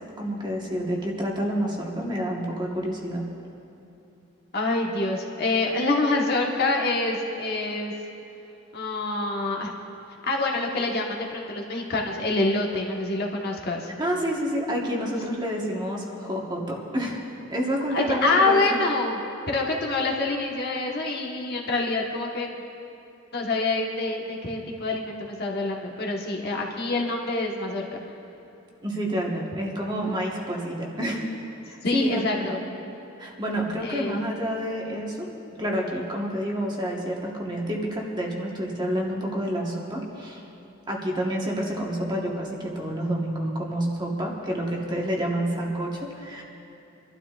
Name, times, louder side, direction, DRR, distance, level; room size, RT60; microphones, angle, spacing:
voice 1, 0.2-3.3 14.0-17.2 17.5-18.8 28.8-31.2 31.7-32.6 33.2-35.3 35.6-40.4 40.9-46.4, equal, 20° right, -2 dB, 1.3 m, -28 dB
voice 2, 4.5-7.9 8.7-9.7 10.2-13.9 17.9-19.2 19.5-22.6 23.3-28.0 31.8-32.6 33.8-34.2, left 2 dB, 50° left, -1 dB, 1.3 m, -26 dB
29.5 x 12.0 x 2.5 m, 2.8 s
head